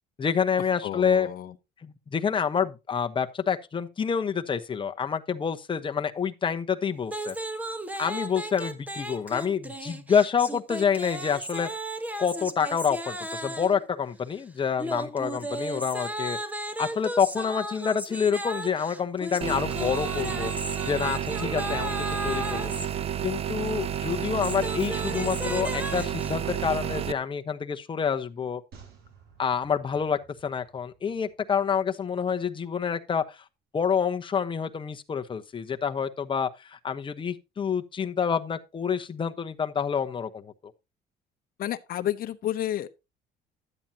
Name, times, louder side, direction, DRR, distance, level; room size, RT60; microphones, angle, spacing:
voice 1, 0.2-1.3 1.8-7.4 8.0-11.7 12.2-16.4 16.8-20.5 20.8-28.6 29.4-33.4 33.7-40.5, left 7 dB, 30° left, 1.0 m, -28 dB
voice 2, 0.8-1.5 41.6-42.9, left 12 dB, 60° left, 0.9 m, -30 dB
sound 1, 7.1-13.8 14.8-22.9 24.1-26.3, right 1 dB, 10° right, 1.1 m, -35 dB
sound 2, 19.4-27.1, right 9 dB, 35° right, 0.5 m, -31 dB
sound 3, 28.7-32.2 32.4-32.5, right 6 dB, 70° right, 7.4 m, -55 dB
12.0 x 8.9 x 2.8 m
cardioid pair, 110°, 17 cm